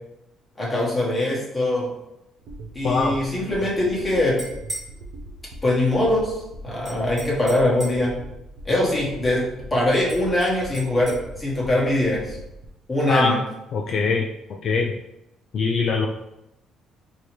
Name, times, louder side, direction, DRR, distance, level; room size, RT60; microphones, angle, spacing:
voice 1, 0.6-1.9 2.7-4.3 5.6-6.3 6.6-8.1 8.6-9.4 9.7-12.4 12.9-13.4, left 1 dB, 15° left, -5 dB, 1.3 m, -22 dB
sound 1, 2.4-12.7, right 2 dB, 65° right, 0.6 m, -40 dB
voice 2, 2.8-3.1 13.1-13.3 13.7-14.3 14.6-14.9 15.5-16.1, left 4 dB, 50° left, 1 dB, 0.3 m, -22 dB
sound 2, 4.4-4.9 6.8-8.1 10.1-11.2, right 1 dB, 25° right, 1.3 m, -38 dB
4.5 x 2.8 x 3.1 m, 0.88 s
cardioid pair, 145°, 0 cm